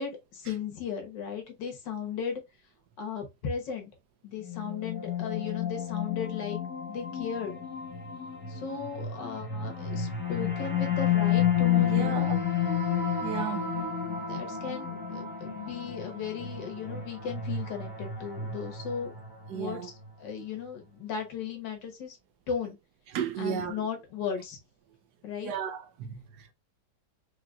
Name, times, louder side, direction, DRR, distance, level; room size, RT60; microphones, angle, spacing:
voice 1, 0.0-2.4 3.0-3.9 4.2-6.6 6.9-7.6 8.5-12.3 14.1-19.1 19.5-22.2 22.5-22.8 23.4-24.6 25.2-25.5, left 6 dB, 85° left, 1.8 m, -36 dB
sound 1, 4.4-19.7, left 8 dB, 5° right, 1.2 m, -31 dB
voice 2, 11.8-12.4 13.2-13.7 19.5-19.9 23.1-23.8 25.4-26.5, right 8 dB, 70° right, 1.2 m, -34 dB
5.0 x 2.8 x 2.3 m
omnidirectional pair, 1.9 m